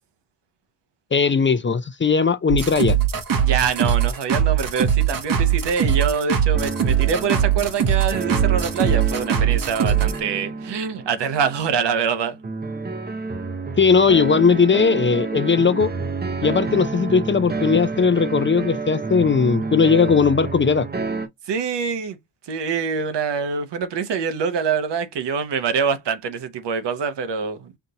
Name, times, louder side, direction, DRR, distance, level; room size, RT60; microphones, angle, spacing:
voice 1, 1.1-3.0 13.8-15.9 16.4-20.9, left 5 dB, 25° left, 0.5 m, -18 dB
sound 1, 2.5-10.2, right 9 dB, 50° right, 1.1 m, -20 dB
voice 2, 3.4-12.4 21.5-22.2 22.5-27.7, right 6 dB, 70° right, 1.0 m, -25 dB
sound 2, 6.5-21.3, right 3 dB, 25° right, 0.7 m, -29 dB
5.8 x 2.6 x 2.9 m
cardioid pair, 75°, 43 cm